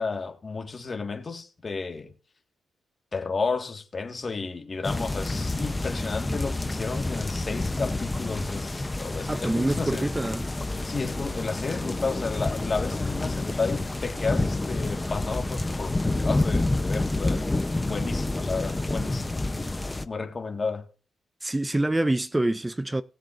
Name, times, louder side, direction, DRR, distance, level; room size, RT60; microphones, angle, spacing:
voice 1, 0.0-2.1 3.1-10.1 10.8-19.4 20.1-20.9, left 4 dB, 40° left, 1.8 m, -32 dB
sound 1, 4.8-20.0, left 2 dB, 20° left, 0.8 m, -28 dB
voice 2, 9.3-10.4 21.4-23.0, right 2 dB, 15° right, 0.5 m, -26 dB
20.0 x 7.6 x 2.6 m
cardioid pair, 65°, 0 cm